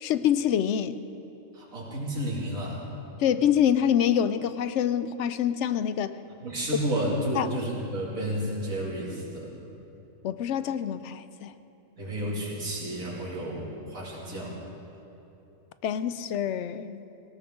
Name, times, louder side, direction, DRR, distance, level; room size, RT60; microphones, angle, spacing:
voice 1, 0.0-1.0 3.2-6.2 7.4-7.5 10.2-11.5 15.8-17.0, left 9 dB, 70° left, 13 dB, 0.8 m, -26 dB
voice 2, 1.5-3.0 6.4-9.6 12.0-14.6, right 1 dB, 90° right, -4 dB, 3.0 m, -31 dB
18.0 x 17.5 x 3.7 m, 2.9 s
omnidirectional pair, 1.4 m